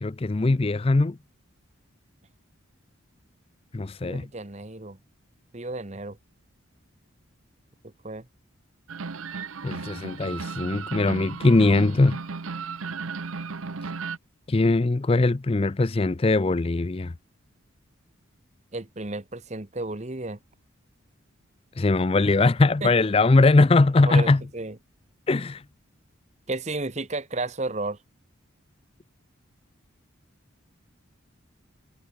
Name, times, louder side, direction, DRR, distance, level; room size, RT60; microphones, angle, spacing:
voice 1, 0.0-1.2 3.7-4.3 9.6-12.2 14.5-17.1 21.8-24.4 25.3-25.6, left 3 dB, 25° left, 0.4 m, -21 dB
voice 2, 4.0-5.0 5.5-6.2 7.8-8.3 18.7-20.4 22.8-22.9 24.1-24.8 26.5-28.0, right 2 dB, 35° right, 1.1 m, -33 dB
sound 1, 8.9-14.2, right 4 dB, 85° right, 0.9 m, -35 dB
head